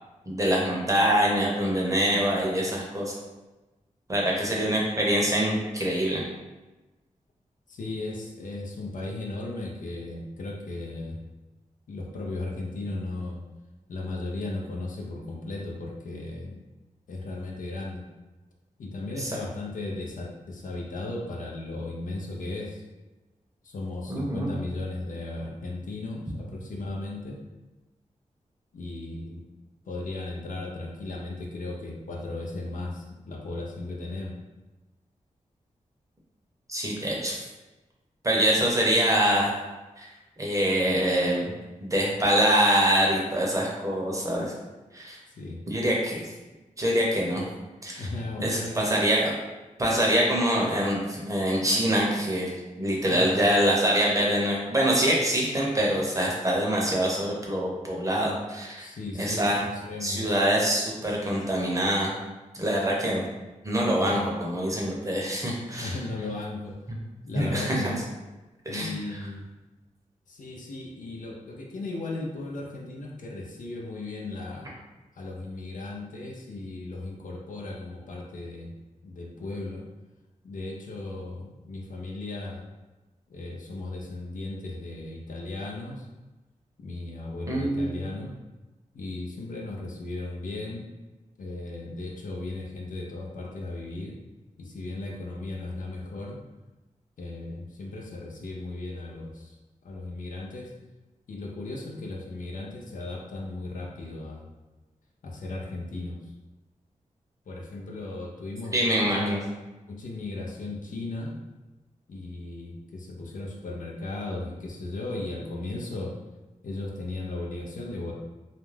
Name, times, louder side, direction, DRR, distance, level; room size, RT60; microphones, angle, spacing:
voice 1, 0.3-3.1 4.1-6.2 19.2-19.4 24.1-24.5 36.7-37.4 38.2-39.5 40.0-40.1 40.4-41.5 41.8-44.5 44.9-45.2 45.7-46.3 46.8-47.5 47.8-48.1 48.4-49.4 49.8-52.5 52.8-58.9 59.1-59.6 60.0-62.1 62.5-63.2 63.6-66.0 66.9-67.0 67.3-67.9 68.7-69.0 87.5-88.0 108.7-109.4, equal, 25° right, -3 dB, 0.7 m, -25 dB
voice 2, 7.7-11.2 11.9-13.4 13.9-16.6 17.1-18.0 18.8-22.8 23.6-27.4 28.7-29.4 29.8-34.4 45.4-45.6 48.0-49.0 53.0-53.5 58.8-60.4 63.8-64.3 65.8-66.8 67.2-68.0 68.7-69.5 70.3-74.7 75.1-78.7 79.0-79.8 80.4-82.6 83.3-86.1 86.8-88.3 88.9-90.9 91.4-94.2 94.6-96.4 97.2-99.6 99.8-100.7 101.3-104.4 105.2-106.2 107.5-109.5 109.9-111.3 112.1-116.1 116.6-118.1, left 2 dB, 75° left, -1 dB, 0.5 m, -36 dB
2.4 x 2.2 x 3.2 m, 1.1 s
wide cardioid pair, 80°, 14 cm